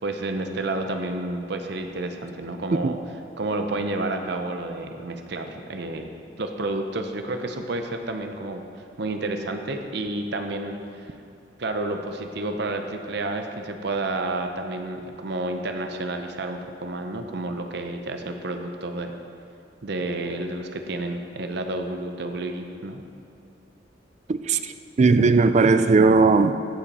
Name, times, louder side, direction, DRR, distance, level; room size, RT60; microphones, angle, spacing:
voice 1, 0.0-3.0 3.4-8.6 9.0-11.1 11.6-19.2 19.8-23.0, right 2 dB, 60° right, 5 dB, 0.7 m, -30 dB
voice 2, 24.3-24.7 25.0-26.6, right 4 dB, 35° right, 11 dB, 0.3 m, -18 dB
15.0 x 5.7 x 4.2 m, 2.5 s
head